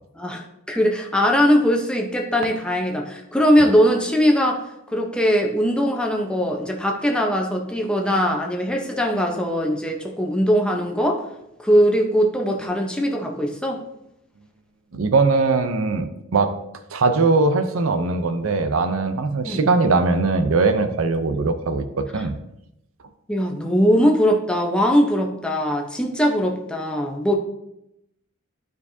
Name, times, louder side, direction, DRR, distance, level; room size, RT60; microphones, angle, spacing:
voice 1, 0.2-4.6 4.9-11.2 11.6-13.8 19.4-19.7 21.3-21.4 22.1-22.2 23.3-27.3, equal, 5° left, 1 dB, 0.8 m, -20 dB
voice 2, 14.9-16.5 16.9-22.3, right 3 dB, 80° right, 9 dB, 0.6 m, -20 dB
12.0 x 4.7 x 2.7 m, 0.83 s
head